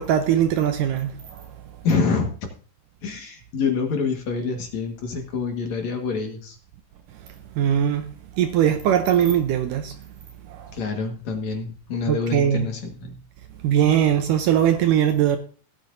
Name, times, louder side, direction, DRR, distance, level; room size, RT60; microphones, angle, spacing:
voice 1, 0.0-1.4 7.6-8.0 8.4-10.0 10.5-10.7 12.1-12.7 13.6-15.4, right 10 dB, 75° right, 2.0 m, -20 dB
voice 2, 1.8-2.3 3.0-6.6 10.7-13.2, left 4 dB, 55° left, 2.5 m, -26 dB
17.0 x 9.3 x 2.6 m
omnidirectional pair, 4.3 m